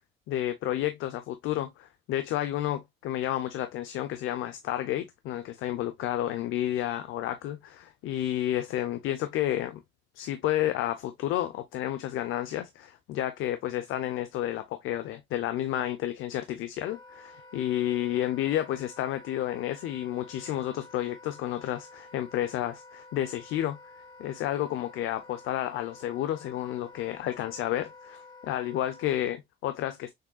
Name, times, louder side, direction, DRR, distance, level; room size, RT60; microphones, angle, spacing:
voice 1, 0.3-9.8 10.2-23.8 24.2-30.1, left 13 dB, 90° left, 0.6 m, -31 dB
Wind instrument woodwind instrument, 16.9-29.1, left 3 dB, 20° left, 1.5 m, -51 dB
6.4 x 3.6 x 2.2 m
cardioid pair, 90°, 20 cm